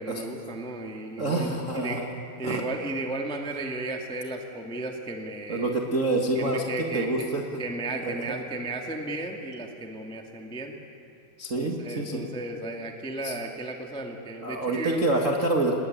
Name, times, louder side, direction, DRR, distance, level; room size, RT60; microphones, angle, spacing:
voice 1, 0.0-2.0 2.4-5.7 6.3-7.3 7.6-10.7 11.5-15.1, right 2 dB, 5° left, 2 dB, 0.9 m, -34 dB
voice 2, 1.2-2.1 2.4-2.6 5.5-7.6 8.0-8.4 11.4-12.3 13.2-13.3 14.4-15.7, right 2 dB, 45° right, 0 dB, 1.0 m, -27 dB
28.5 x 20.5 x 9.3 m, 2.5 s
omnidirectional pair, 4.5 m